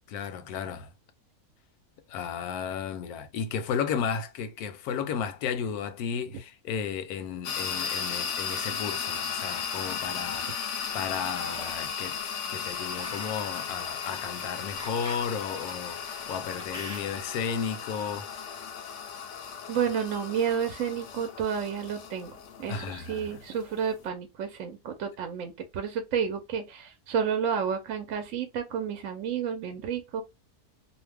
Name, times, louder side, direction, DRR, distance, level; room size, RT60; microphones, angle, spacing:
voice 1, 0.1-0.9 2.1-12.2 12.5-18.3 22.7-23.4, left 7 dB, 85° left, 1.1 m, -34 dB
sound 1, 7.4-24.1, left 6 dB, 65° left, 0.8 m, -36 dB
sound 2, 10.2-10.5 11.4-12.0 12.9-17.3, equal, 5° right, 0.5 m, -45 dB
voice 2, 19.7-22.3 22.6-30.2, right 7 dB, 70° right, 0.9 m, -31 dB
2.6 x 2.1 x 3.3 m
omnidirectional pair, 1.6 m